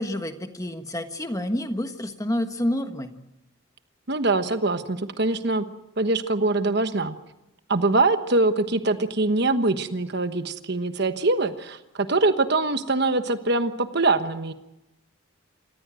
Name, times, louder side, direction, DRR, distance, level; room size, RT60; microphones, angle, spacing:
voice 1, 0.0-3.2, left 1 dB, 15° left, 7 dB, 1.4 m, -28 dB
voice 2, 4.1-5.6 6.0-7.1 7.7-14.5, right 2 dB, 55° right, 9 dB, 1.3 m, -23 dB
27.5 x 15.5 x 7.7 m, 0.94 s
head